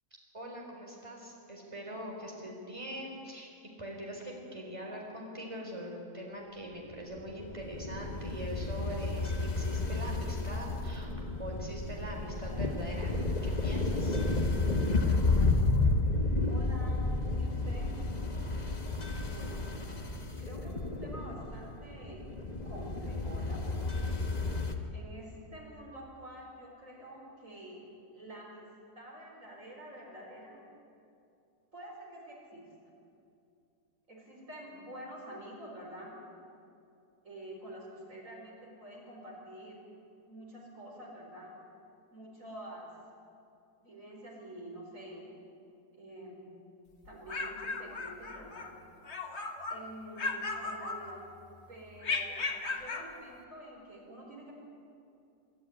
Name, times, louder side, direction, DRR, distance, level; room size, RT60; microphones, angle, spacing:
voice 1, 0.3-3.5 3.8-11.1 11.4-13.1 13.4-14.2, equal, 15° right, -1 dB, 4.3 m, -42 dB
sound 1, 7.2-24.8, left 3 dB, 25° left, 1.4 m, -32 dB
voice 2, 16.5-18.0 19.2-19.6 20.4-22.2 22.6-24.1 24.9-27.8 28.1-28.7 28.9-30.6 31.7-32.7 34.1-36.1 37.2-39.8 40.3-41.6 42.1-42.9 43.8-45.3 45.9-46.6 47.0-48.7 49.7-51.2 51.7-52.4 52.8-54.5, right 1 dB, 45° right, -2 dB, 5.0 m, -47 dB
sound 2, 47.0-48.7 49.0-49.8 50.2-51.4 52.0-53.1, left 3 dB, 40° left, 1.6 m, -36 dB
24.5 x 13.0 x 9.8 m, 2.6 s
omnidirectional pair, 1.8 m